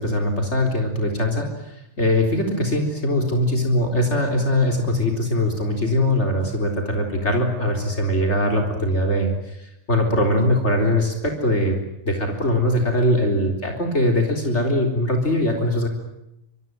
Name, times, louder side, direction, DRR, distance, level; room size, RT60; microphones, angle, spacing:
voice 1, 0.1-1.4 2.0-6.7 6.9-9.3 9.9-11.0 11.4-11.7 12.4-15.9, left 1 dB, 65° left, 3 dB, 4.3 m, -21 dB
26.5 x 23.5 x 9.3 m, 0.84 s
omnidirectional pair, 1.2 m